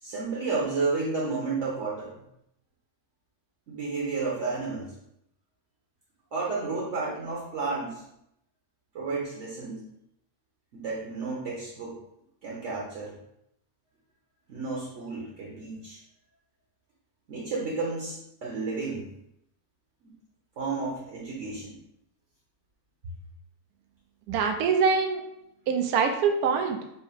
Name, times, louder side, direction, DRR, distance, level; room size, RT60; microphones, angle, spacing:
voice 1, 0.0-2.1 3.7-4.9 6.3-8.0 8.9-9.8 10.7-12.0 12.4-13.1 14.5-16.0 17.3-19.1 20.0-20.1 20.6-21.8, right 3 dB, 55° right, -4 dB, 1.1 m, -32 dB
voice 2, 24.3-25.2 25.7-26.8, right 5 dB, 75° right, 4 dB, 1.1 m, -24 dB
4.8 x 2.1 x 4.7 m, 0.79 s
omnidirectional pair, 1.6 m